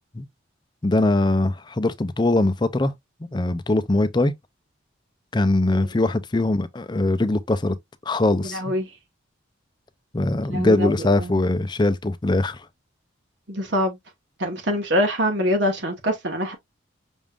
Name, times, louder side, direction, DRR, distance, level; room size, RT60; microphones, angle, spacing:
voice 1, 0.8-2.9 3.3-4.3 5.3-7.8 8.1-8.6 10.1-12.6, left 2 dB, 20° left, 0.5 m, -21 dB
voice 2, 8.5-8.9 10.5-10.9 11.2-11.3 13.5-14.0 14.4-16.5, equal, 60° right, 1.1 m, -24 dB
6.1 x 3.6 x 2.4 m
head